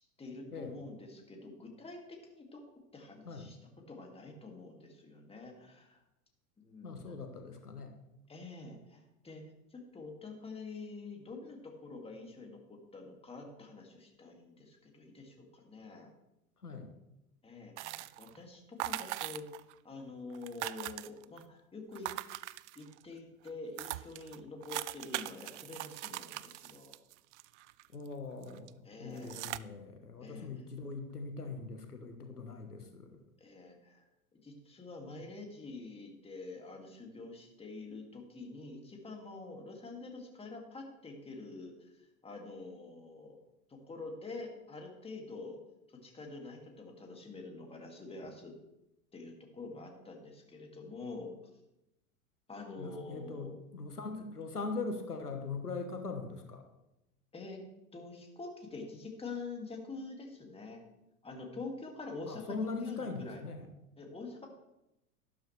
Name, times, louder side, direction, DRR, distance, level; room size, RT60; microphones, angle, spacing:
voice 1, 0.0-2.6 2.9-3.6 3.9-6.0 6.6-7.0 8.3-9.4 9.7-16.1 17.4-22.1 22.8-26.9 28.8-29.5 30.2-30.5 33.4-34.0 34.3-41.7 42.2-43.4 43.7-45.6 46.0-48.6 49.1-51.3 52.5-53.5 57.3-57.6 57.9-60.8 61.2-63.4 64.0-64.5, left 3 dB, 15° left, 1 dB, 2.4 m, -46 dB
voice 2, 6.8-7.9 16.6-16.9 27.9-33.2 52.8-56.6 62.3-63.7, left 3 dB, 90° left, 5 dB, 1.4 m, -41 dB
sound 1, 17.8-18.4 18.8-19.7 20.0-20.1 20.3-21.4 21.9-23.0 23.5-23.6 23.8-28.1 28.4-28.7 29.2-29.6, right 17 dB, 50° right, 0.5 m, -41 dB
12.0 x 12.0 x 3.3 m, 0.90 s
figure-of-eight pair, 90°, 44 cm